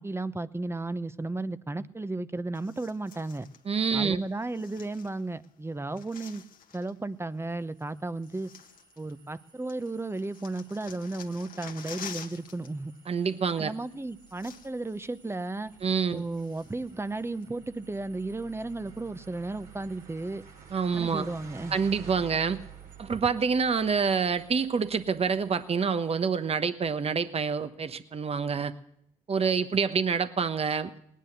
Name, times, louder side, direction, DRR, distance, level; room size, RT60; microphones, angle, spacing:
voice 1, 0.0-3.5 3.9-6.4 6.7-8.5 9.0-12.9 13.6-15.7 16.1-20.4 21.0-21.8, right 2 dB, 15° right, 14 dB, 0.9 m, -34 dB
sound 1, 2.5-3.6 4.4-5.5 5.7-7.0 7.8-7.9 8.2-9.4 9.7-12.7 13.0-13.2 13.9-14.0 14.2-15.0 15.3-15.4 15.9-16.9 17.4-17.5, left 8 dB, 65° left, 1.5 m, -48 dB
voice 2, 3.7-4.2 13.1-13.7 15.8-16.2 20.7-21.3 21.7-22.6 23.0-28.7 29.3-30.9, right 5 dB, 40° right, 11 dB, 1.1 m, -27 dB
sound 2, 7.6-26.1, right 6 dB, 70° right, 3.1 m, -52 dB
19.0 x 10.5 x 6.7 m, 0.73 s
hypercardioid pair, 50°, 15 cm